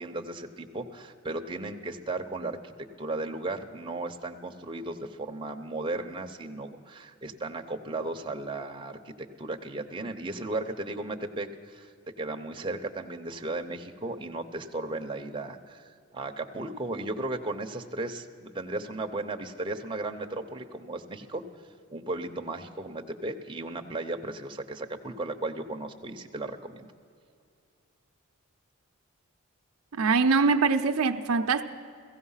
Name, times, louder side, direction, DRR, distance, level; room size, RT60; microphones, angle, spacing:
voice 1, 0.0-2.6 3.0-9.1 9.4-11.9 12.2-21.4 21.9-26.9, right 2 dB, 25° right, 0.8 m, -35 dB
voice 2, 29.9-31.6, right 4 dB, 75° right, 0.6 m, -23 dB
16.0 x 16.0 x 5.6 m
head